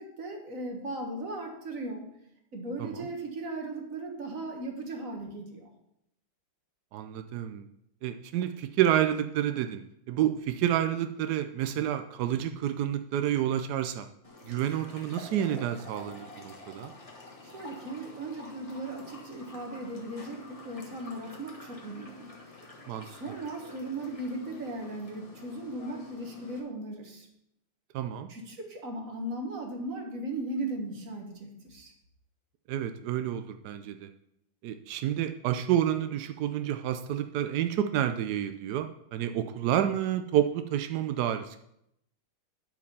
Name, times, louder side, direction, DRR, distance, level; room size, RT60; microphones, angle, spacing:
voice 1, 0.0-2.1 2.5-5.7 17.4-22.3 23.0-27.3 28.3-31.9, right 2 dB, 40° right, 2 dB, 1.8 m, -37 dB
voice 2, 6.9-7.6 8.0-9.8 10.1-14.1 14.5-16.9 22.9-23.1 27.9-28.3 32.7-34.1 34.6-41.6, right 11 dB, 80° right, 8 dB, 0.9 m, -29 dB
sound 1, 14.2-26.6, left 2 dB, 15° left, 1.6 m, -48 dB
12.0 x 4.9 x 5.5 m, 0.78 s
omnidirectional pair, 2.3 m